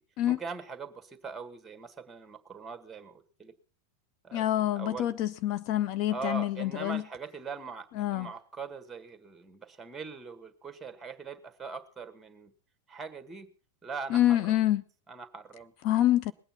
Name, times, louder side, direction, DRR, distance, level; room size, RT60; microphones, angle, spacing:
voice 1, 0.3-3.6 4.2-4.5 4.7-5.1 6.1-12.5 12.9-13.5 13.8-14.7 15.1-15.7, right 5 dB, 10° right, 1.5 m, -41 dB
voice 2, 4.3-7.0 8.0-8.3 14.1-14.8 15.8-16.3, left 13 dB, 40° left, 0.6 m, -26 dB
20.0 x 8.8 x 5.6 m
figure-of-eight pair, 90°, 0 cm